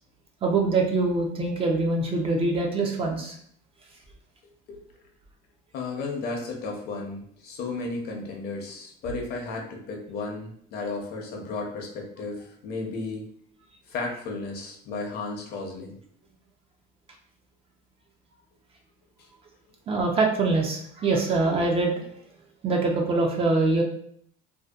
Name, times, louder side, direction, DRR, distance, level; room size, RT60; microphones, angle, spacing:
voice 1, 0.4-3.4 19.9-21.9 22.6-23.8, right 3 dB, 30° right, 1 dB, 0.4 m, -24 dB
voice 2, 5.7-13.3 13.9-16.0 19.2-19.3, left 3 dB, 55° left, 0 dB, 0.7 m, -34 dB
2.6 x 2.1 x 2.3 m, 0.64 s
cardioid pair, 135°, 20 cm